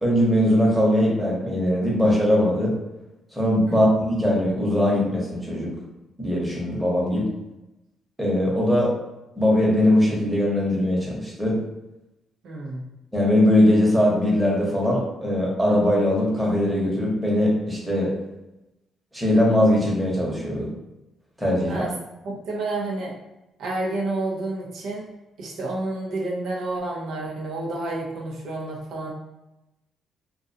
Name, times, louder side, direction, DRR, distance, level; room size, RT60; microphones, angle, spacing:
voice 1, 0.0-2.7 3.3-5.7 6.2-7.3 8.2-8.9 9.4-11.6 13.1-18.1 19.1-20.7 21.4-21.8, left 1 dB, 5° right, -5 dB, 0.9 m, -20 dB
voice 2, 12.4-12.8 21.7-21.9 22.2-23.1 23.6-25.1 25.4-29.1, right 2 dB, 75° right, -2 dB, 0.5 m, -29 dB
2.4 x 2.2 x 2.6 m, 0.95 s
cardioid pair, 90°, 0 cm